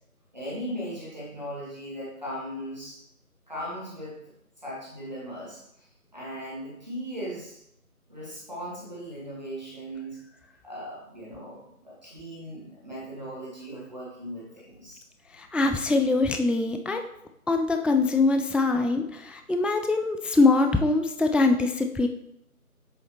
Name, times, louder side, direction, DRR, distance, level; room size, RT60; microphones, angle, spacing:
voice 1, 0.3-3.0 3.5-4.2 4.6-5.6 6.1-7.6 8.1-10.2 10.6-15.0, equal, 30° right, -6 dB, 1.7 m, -38 dB
voice 2, 15.4-17.0 17.5-22.1, left 3 dB, 5° right, 5 dB, 0.3 m, -23 dB
7.7 x 4.1 x 3.0 m, 0.78 s
figure-of-eight pair, 170°, 45 cm